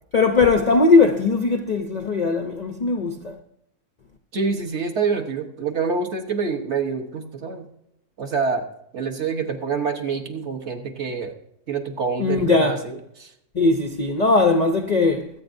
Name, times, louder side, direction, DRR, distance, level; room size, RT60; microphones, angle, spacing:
voice 1, 0.1-3.4 12.2-12.8 13.5-15.3, left 3 dB, 55° left, 0.4 m, -19 dB
voice 2, 4.3-7.7 8.2-11.3 11.7-13.3, right 5 dB, 50° right, 1.3 m, -26 dB
24.0 x 8.4 x 2.6 m
omnidirectional pair, 1.6 m